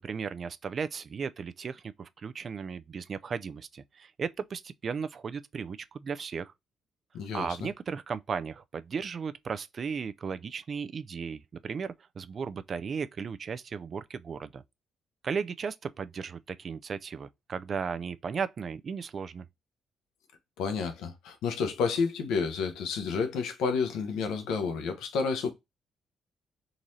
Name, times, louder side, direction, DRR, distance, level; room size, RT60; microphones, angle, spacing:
voice 1, 0.0-6.5 7.3-14.6 15.2-19.4, right 6 dB, 45° right, 0.3 m, -35 dB
voice 2, 7.1-7.7 20.6-25.5, left 5 dB, 90° left, 0.8 m, -30 dB
3.8 x 2.7 x 3.0 m
cardioid pair, 90°, 0 cm